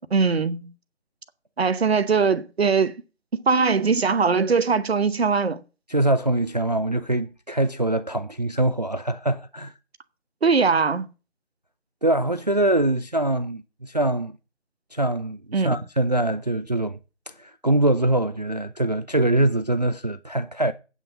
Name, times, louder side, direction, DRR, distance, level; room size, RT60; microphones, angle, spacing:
voice 1, 0.1-0.7 1.6-3.0 3.3-5.6 10.4-11.1 15.5-15.7, right 5 dB, 60° right, 1.0 m, -21 dB
voice 2, 5.9-9.7 12.0-14.4 14.9-17.0 17.3-20.7, right 1 dB, 35° right, 0.4 m, -23 dB
8.8 x 6.1 x 8.2 m
figure-of-eight pair, 155°, 36 cm